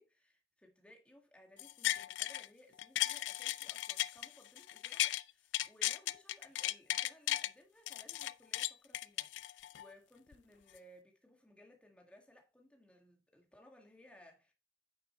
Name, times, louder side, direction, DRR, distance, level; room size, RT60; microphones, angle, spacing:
voice 1, 0.0-14.5, left 1 dB, 5° left, 1.9 m, -62 dB
sound 1, 1.6-2.5 2.8-5.2 5.5-7.5 7.9-9.9 10.3-10.4, left 13 dB, 85° left, 0.4 m, -36 dB
9.1 x 6.7 x 3.1 m
head